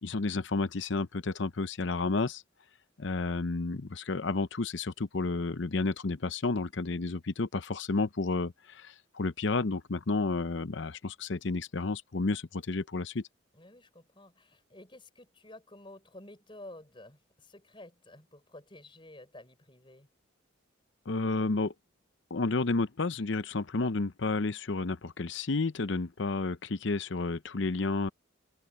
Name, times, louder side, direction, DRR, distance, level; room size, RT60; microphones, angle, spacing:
voice 1, 0.0-2.4 3.0-13.2 21.1-21.7 22.3-28.1, left 3 dB, 60° left, 0.7 m, -31 dB
voice 2, 13.5-20.1, left 1 dB, 25° left, 4.4 m, -51 dB
head